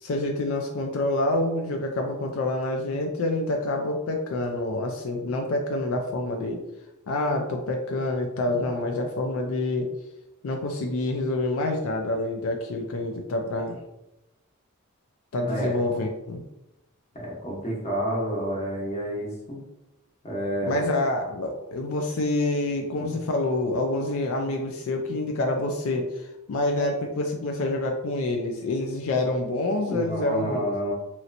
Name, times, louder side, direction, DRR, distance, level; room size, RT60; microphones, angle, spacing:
voice 1, 0.0-6.6 7.1-9.9 10.4-13.8 15.3-16.4 20.6-30.7, left 2 dB, 85° left, 2 dB, 0.4 m, -27 dB
voice 2, 15.4-15.8 17.1-19.6 20.2-20.8 23.0-23.2 29.9-30.9, equal, 35° left, -4 dB, 1.0 m, -29 dB
3.1 x 2.8 x 2.6 m, 0.92 s
head